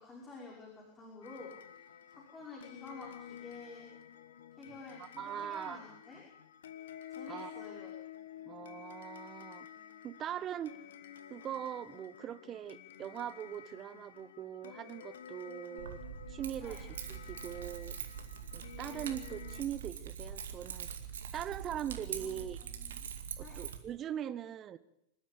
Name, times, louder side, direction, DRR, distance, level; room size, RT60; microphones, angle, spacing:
voice 1, 0.0-1.5 2.1-3.9 4.5-6.2 7.1-7.9 16.6-16.8 22.2-23.1 23.4-23.6, left 3 dB, 20° left, -3 dB, 6.0 m, -50 dB
sound 1, 1.2-19.6, left 10 dB, 60° left, 1.5 m, -51 dB
voice 2, 5.0-5.8 7.3-7.7 8.4-9.7 10.0-10.8 11.3-16.0 16.3-16.8 17.1-18.0 18.5-20.9 21.3-22.6 23.4-24.8, right 10 dB, 30° right, 16 dB, 0.8 m, -41 dB
Keys jangling, 15.8-23.8, right 8 dB, 65° right, 2.3 m, -43 dB
26.0 x 13.0 x 8.6 m, 0.80 s
figure-of-eight pair, 90°, 0 cm